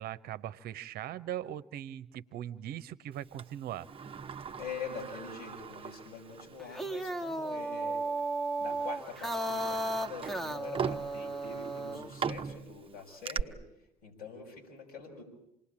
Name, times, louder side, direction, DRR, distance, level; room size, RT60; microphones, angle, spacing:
voice 1, 0.0-3.9, right 12 dB, 60° right, 13 dB, 1.0 m, -40 dB
Sliding door, 3.4-6.6 7.0-7.1 8.0-8.2 8.7-13.4, right 6 dB, 30° right, 1.0 m, -40 dB
voice 2, 4.6-8.0 8.6-13.6 14.0-15.2, left 5 dB, 90° left, -5 dB, 6.3 m, -44 dB
sound 1, 6.6-12.1, right 2 dB, ahead, 1.4 m, -34 dB
27.5 x 20.0 x 8.7 m, 0.80 s
hypercardioid pair, 55°, 18 cm